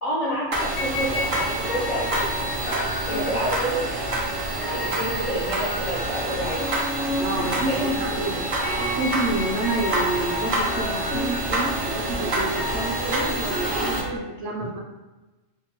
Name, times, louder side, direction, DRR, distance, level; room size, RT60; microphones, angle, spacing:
voice 1, 0.0-2.5 2.8-3.8 4.1-4.3 4.7-6.7 7.7-8.3, right 1 dB, 50° left, -8 dB, 0.5 m, -30 dB
sound 1, 0.5-14.0, right 2 dB, 45° right, 0.4 m, -28 dB
sound 2, 0.8-14.2, left 1 dB, 70° left, 0.9 m, -32 dB
voice 2, 3.2-3.5 7.2-8.4 8.9-14.8, right 2 dB, 65° right, -1 dB, 0.8 m, -29 dB
2.8 x 2.2 x 2.9 m, 1.1 s
omnidirectional pair, 1.3 m